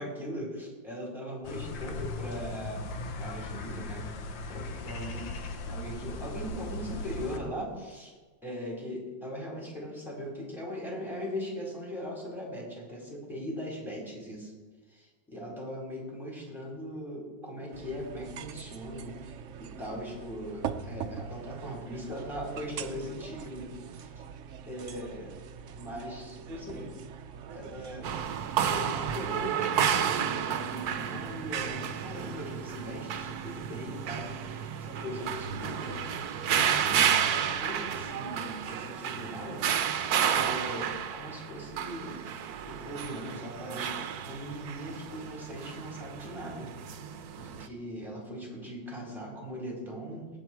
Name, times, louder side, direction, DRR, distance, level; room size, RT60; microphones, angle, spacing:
voice 1, 0.0-2.9 3.2-8.1 8.4-14.5 14.9-24.1 24.7-25.3 25.7-27.0 27.5-28.1 28.5-36.0 36.7-40.0 40.3-42.2 42.6-46.7 47.4-50.3, equal, ahead, -3 dB, 4.7 m, -40 dB
sound 1, 1.4-7.4, left 2 dB, 75° left, 1.8 m, -38 dB
sound 2, 17.7-29.6, right 8 dB, 85° right, 0.6 m, -43 dB
sound 3, 28.0-47.7, right 8 dB, 65° right, 1.1 m, -31 dB
20.0 x 9.5 x 4.7 m, 1.4 s
omnidirectional pair, 2.1 m